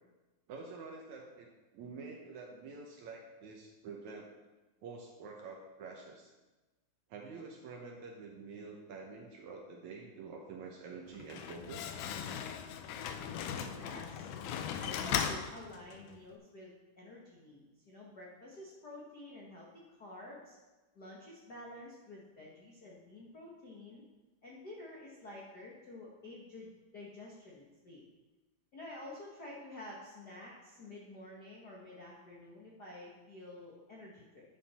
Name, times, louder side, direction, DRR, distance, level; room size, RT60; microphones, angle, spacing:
voice 1, 0.5-4.3 4.8-6.3 7.1-11.9 13.6-13.7, right 4 dB, 65° right, 1 dB, 2.0 m, -48 dB
Slam, 11.1-16.2, left 8 dB, 80° left, 1.9 m, -38 dB
voice 2, 13.5-14.3 14.8-19.7 20.0-20.6 20.9-24.0 24.4-28.0 28.7-34.4, left 1 dB, 55° left, -4 dB, 1.1 m, -50 dB
11.0 x 7.4 x 4.3 m, 1.1 s
omnidirectional pair, 4.1 m